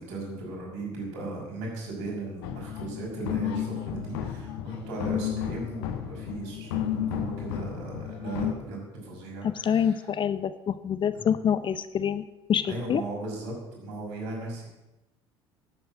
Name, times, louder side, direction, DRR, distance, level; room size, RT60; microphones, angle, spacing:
voice 1, 0.0-10.0 11.1-11.3 12.7-13.5 13.8-14.6, right 2 dB, 65° right, -2 dB, 6.0 m, -37 dB
sound 1, 2.4-8.5, left 10 dB, 70° left, 1.3 m, -32 dB
voice 2, 9.4-12.2 12.5-13.0, left 8 dB, 35° left, 13 dB, 0.7 m, -26 dB
12.0 x 7.7 x 8.5 m, 1.0 s
figure-of-eight pair, 60°, 14 cm